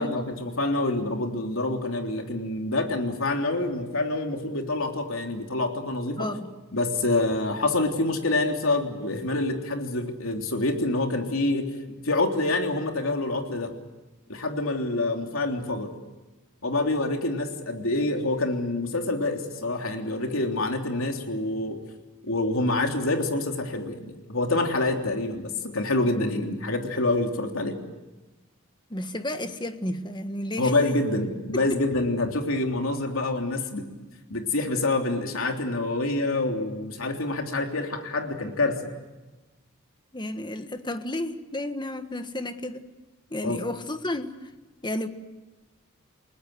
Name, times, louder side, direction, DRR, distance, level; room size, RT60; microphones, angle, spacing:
voice 1, 0.0-6.3 6.7-13.7 14.3-15.9 16.6-21.8 22.2-27.8 30.6-33.9 34.3-38.9 43.4-43.6, left 2 dB, 80° left, 3.3 m, -27 dB
voice 2, 6.2-6.5 28.9-30.7 31.5-31.6 40.1-42.9 43.3-44.5 44.8-45.1, left 1 dB, 20° left, 1.6 m, -32 dB
30.0 x 19.5 x 7.9 m
head